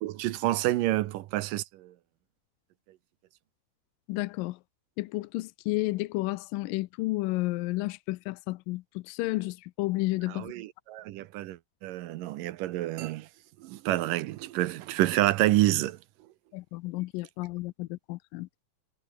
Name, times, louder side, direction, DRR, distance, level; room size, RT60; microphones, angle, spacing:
voice 1, 0.0-1.9 10.3-13.3 13.6-16.0, right 16 dB, 75° right, 2.4 m, -28 dB
voice 2, 4.1-4.6 5.0-10.5 16.5-18.5, left 20 dB, 90° left, 2.3 m, -32 dB
omnidirectional pair, 4.0 m